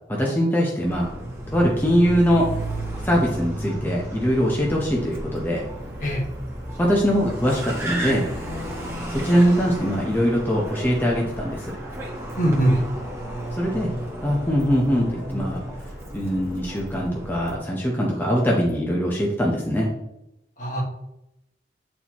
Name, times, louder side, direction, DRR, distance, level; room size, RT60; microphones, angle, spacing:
voice 1, 0.1-1.1 1.5-2.5 3.0-5.6 6.8-8.2 9.1-11.8 13.6-13.9 14.2-15.6 16.1-19.9, equal, 10° left, -3 dB, 0.8 m, -22 dB
Car, 0.8-17.6, right 1 dB, 15° right, 1.3 m, -33 dB
voice 2, 12.4-12.7 20.6-20.8, right 1 dB, 45° left, 0 dB, 1.5 m, -21 dB
8.9 x 4.3 x 3.0 m, 0.87 s
head